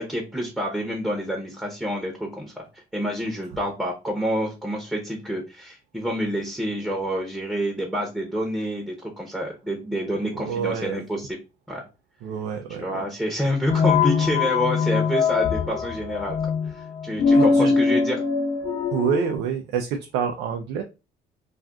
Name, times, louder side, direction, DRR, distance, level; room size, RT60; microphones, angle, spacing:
voice 1, 0.0-11.3 11.7-11.8 12.8-18.2, equal, 5° right, 0 dB, 0.7 m, -28 dB
voice 2, 10.3-11.0 12.2-13.1 17.3-17.8 18.9-20.8, right 7 dB, 85° right, 4 dB, 0.4 m, -27 dB
sound 1, 13.7-19.4, left 5 dB, 45° left, 0.7 m, -22 dB
2.5 x 2.3 x 3.4 m, 0.28 s
cardioid pair, 110°, 17 cm